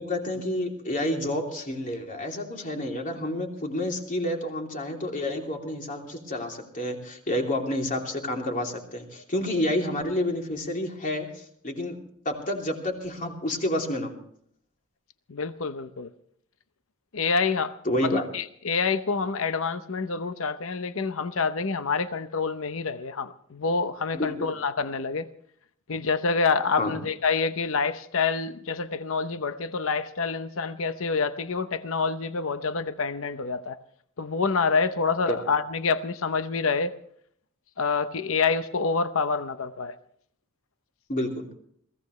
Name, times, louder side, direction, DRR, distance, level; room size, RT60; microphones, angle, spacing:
voice 1, 0.0-14.2 17.8-18.3 24.1-24.5 26.7-26.9 35.3-35.4 41.1-41.5, left 1 dB, 40° left, 1 dB, 3.0 m, -29 dB
voice 2, 15.3-16.1 17.1-17.7 18.0-25.3 25.9-33.8 34.2-36.9 37.8-39.9, left 4 dB, 65° left, 11 dB, 0.8 m, -27 dB
22.5 x 16.0 x 3.2 m, 0.66 s
head